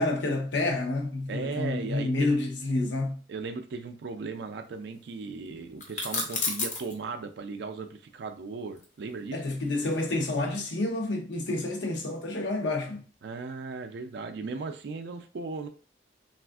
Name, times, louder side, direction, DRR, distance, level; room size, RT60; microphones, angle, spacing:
voice 1, 0.0-3.2 9.3-13.1, left 2 dB, 80° left, 0.7 m, -29 dB
voice 2, 1.3-2.4 3.3-9.4 13.2-15.7, right 4 dB, 60° right, 0.3 m, -37 dB
sound 1, 5.8-6.9 8.8-10.3, left 3 dB, 40° left, 0.6 m, -32 dB
3.4 x 2.4 x 2.3 m
head